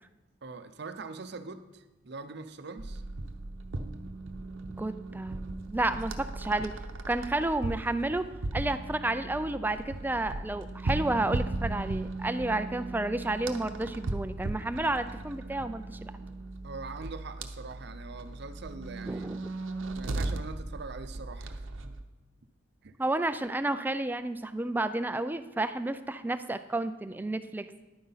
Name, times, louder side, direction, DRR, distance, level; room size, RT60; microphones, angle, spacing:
voice 1, 0.4-3.0 16.6-19.3 19.9-21.9 22.8-22.9, right 4 dB, 60° right, 10 dB, 0.6 m, -43 dB
sound 1, 2.8-22.1, right 2 dB, 90° right, 0.8 m, -37 dB
voice 2, 4.8-6.7 7.1-8.2 8.5-16.1 19.1-19.4 23.0-27.7, right 2 dB, 10° right, 11 dB, 0.4 m, -31 dB
10.5 x 9.4 x 4.0 m, 1.1 s
head